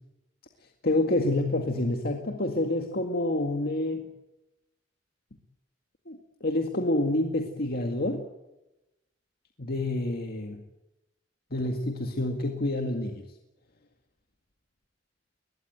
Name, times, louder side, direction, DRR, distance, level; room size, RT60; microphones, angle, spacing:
voice 1, 0.8-4.1 6.1-8.2 9.6-10.6 11.5-13.3, left 1 dB, 55° left, 4 dB, 2.0 m, -28 dB
21.5 x 20.5 x 9.2 m, 0.95 s
head